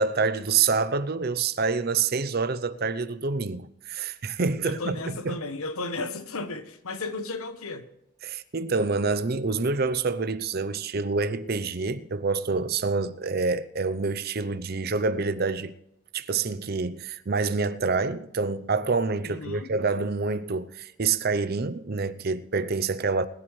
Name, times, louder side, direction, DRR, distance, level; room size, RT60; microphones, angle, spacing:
voice 1, 0.0-5.0 5.2-5.3 8.2-15.7 16.1-23.2, right 4 dB, 45° right, 0.6 m, -27 dB
voice 2, 4.6-7.9 19.2-19.7, left 3 dB, 85° left, 1.2 m, -34 dB
21.0 x 11.0 x 3.2 m
head